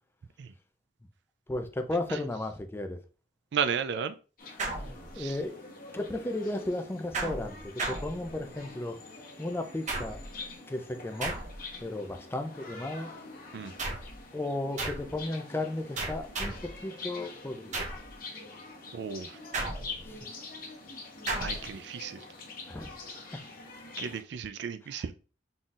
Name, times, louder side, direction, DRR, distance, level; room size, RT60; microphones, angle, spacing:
voice 1, 1.5-3.0 5.2-5.6 5.9-9.0 9.4-10.2 10.7-11.4 11.8-13.1 14.3-16.5 16.8-17.8 20.1-20.2 22.7-22.9 24.9-25.0, left 2 dB, 10° left, 0.4 m, -34 dB
voice 2, 3.5-4.1 5.2-5.4 13.5-13.7 18.9-19.3 21.4-22.2 24.0-25.1, right 7 dB, 60° right, 0.4 m, -33 dB
sound 1, 4.4-24.2, left 3 dB, 50° left, 1.0 m, -45 dB
sound 2, 4.6-5.4 7.1-8.7 9.9-10.4 11.2-11.8 13.8-14.2 14.8-15.2 16.0-16.8 17.7-18.1 19.5-20.2 21.3-21.7, right 2 dB, 40° right, 0.8 m, -35 dB
3.9 x 3.8 x 2.4 m
head